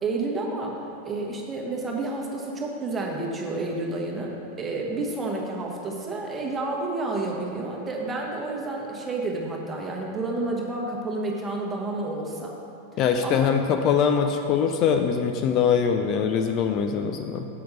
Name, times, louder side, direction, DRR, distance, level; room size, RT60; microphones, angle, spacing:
voice 1, 0.0-0.8 1.0-12.5 13.2-13.5, right 2 dB, 20° right, -1 dB, 1.2 m, -30 dB
voice 2, 13.0-17.5, left 7 dB, 35° left, 5 dB, 0.4 m, -23 dB
7.9 x 5.9 x 5.1 m, 2.6 s
figure-of-eight pair, 90°, 0 cm